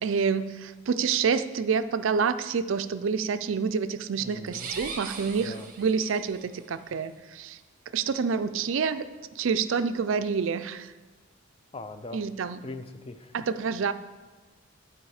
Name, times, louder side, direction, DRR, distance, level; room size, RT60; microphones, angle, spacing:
voice 1, 0.0-7.6 7.9-9.1 9.4-10.9 12.1-12.6 13.3-13.9, right 6 dB, 70° right, 12 dB, 0.4 m, -28 dB
voice 2, 4.2-4.7 5.4-5.7 11.7-12.2 12.6-13.3, left 2 dB, 25° left, 9 dB, 0.5 m, -41 dB
sound 1, 4.5-6.5, right 4 dB, 40° right, 0.9 m, -40 dB
10.5 x 4.8 x 4.8 m, 1.2 s
head